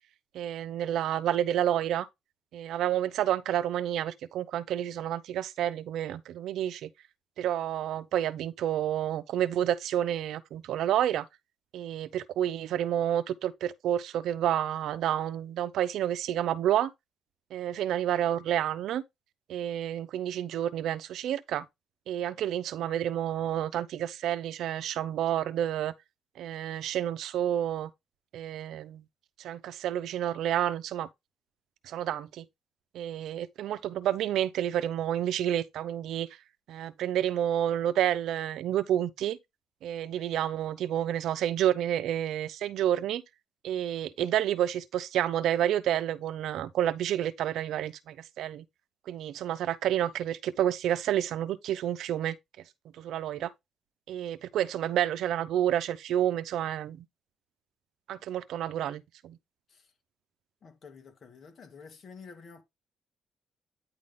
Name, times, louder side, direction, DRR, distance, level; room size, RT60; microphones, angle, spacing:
voice 1, 0.3-2.1 2.5-6.9 7.4-11.3 11.7-16.9 17.5-19.0 19.5-21.6 22.1-25.9 26.4-27.9 28.3-29.0 29.4-31.1 31.8-32.4 32.9-36.3 36.7-39.4 39.8-43.2 43.6-48.6 49.1-52.4 53.0-53.5 54.1-57.0 58.1-59.4, right 11 dB, 80° right, 0.7 m, -29 dB
voice 2, 60.6-62.6, left 5 dB, 50° left, 2.3 m, -50 dB
9.7 x 3.9 x 3.7 m
cardioid pair, 90°, 0 cm